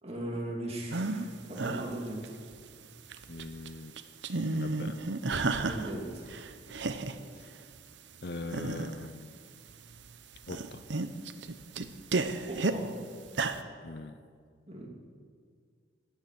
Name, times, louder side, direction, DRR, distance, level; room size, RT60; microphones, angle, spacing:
voice 1, 0.0-2.3 5.6-6.2 12.5-12.9 14.7-14.9, right 1 dB, 35° right, -2 dB, 2.9 m, -38 dB
sound 1, 0.9-1.3 1.6-2.6 3.0-3.7 4.0-6.0 6.3-7.2 7.7-7.8 8.4-9.0 9.7-10.1 10.3-12.8 13.3-13.6, right 3 dB, 70° right, 0.8 m, -33 dB
voice 2, 3.3-4.0 4.5-5.0 7.4-7.5 8.2-9.4 10.5-10.8 13.8-14.2, left 2 dB, 60° left, 11 dB, 0.7 m, -41 dB
17.5 x 12.5 x 6.2 m, 2.1 s
head